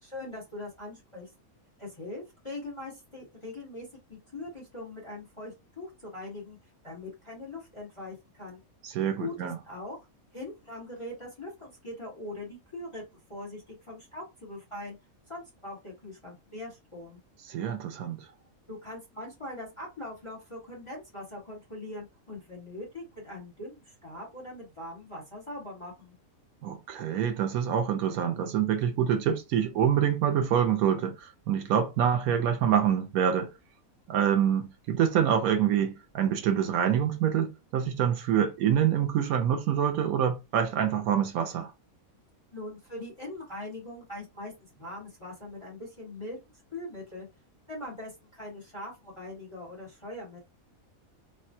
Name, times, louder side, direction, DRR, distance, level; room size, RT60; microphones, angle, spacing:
voice 1, 0.0-1.3 1.8-6.6 6.8-8.6 9.2-10.0 10.3-15.0 15.3-17.2 18.7-26.2 42.5-47.3 47.7-50.4, left 2 dB, 25° left, 1.1 m, -41 dB
voice 2, 8.8-9.6 17.5-18.3 26.6-33.5 34.1-41.7, right 9 dB, 90° right, 1.1 m, -26 dB
3.3 x 2.2 x 2.6 m
omnidirectional pair, 1.5 m